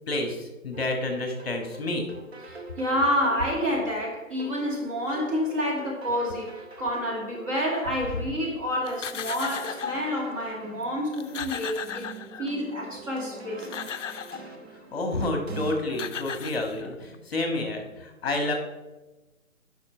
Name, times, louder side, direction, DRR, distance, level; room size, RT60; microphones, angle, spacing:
voice 1, 0.1-2.1 14.9-18.5, left 2 dB, 45° left, 3 dB, 1.8 m, -29 dB
sound 1, 0.7-15.7, right 2 dB, 50° right, 1.5 m, -45 dB
voice 2, 2.5-12.0 12.4-13.8, equal, 25° right, -4 dB, 2.1 m, -28 dB
sound 2, 8.9-10.2 10.8-10.9 11.1-12.7 13.4-14.5 15.6-15.7 15.9-17.1, left 8 dB, 60° left, 0.5 m, -36 dB
10.5 x 5.8 x 4.5 m, 1.1 s
hypercardioid pair, 170°, 41 cm